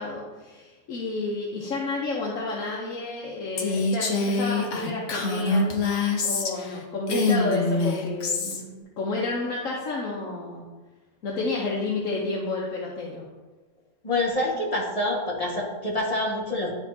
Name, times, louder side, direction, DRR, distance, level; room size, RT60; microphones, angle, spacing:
voice 1, 0.0-5.7 6.2-10.6 11.2-13.2, left 3 dB, 85° left, -3 dB, 1.3 m, -30 dB
Female speech woman speaking, 3.6-6.8 7.1-8.6, left 3 dB, 65° left, 1.1 m, -25 dB
voice 2, 14.0-16.7, left 1 dB, 30° left, -4 dB, 1.4 m, -26 dB
11.0 x 3.6 x 2.7 m, 1.2 s
omnidirectional pair, 1.4 m